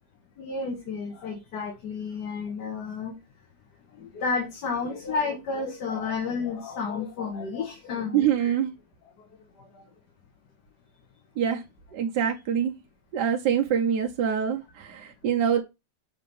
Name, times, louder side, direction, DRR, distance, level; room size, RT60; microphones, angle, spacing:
voice 1, 0.4-3.1 3.9-8.5 9.7-9.8, left 4 dB, 60° left, 1.7 m, -31 dB
voice 2, 8.1-8.7 11.4-11.6 11.9-12.7 13.1-15.6, right 8 dB, 70° right, 1.3 m, -25 dB
6.7 x 2.9 x 5.3 m
omnidirectional pair, 2.1 m